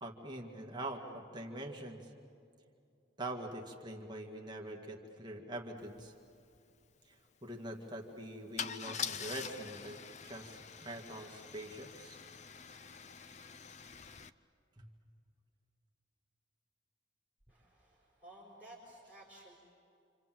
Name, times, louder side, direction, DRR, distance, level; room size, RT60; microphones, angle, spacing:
voice 1, 0.0-2.1 3.2-6.1 7.0-12.2 14.8-14.9, right 1 dB, 20° right, 0 dB, 2.0 m, -44 dB
Car / Engine starting / Idling, 6.0-6.1 6.3-6.6 8.6-14.3, left 7 dB, 35° left, 0.6 m, -44 dB
voice 2, 17.5-19.6, right 1 dB, 10° left, -6 dB, 5.4 m, -55 dB
28.0 x 27.5 x 7.7 m, 2.5 s
head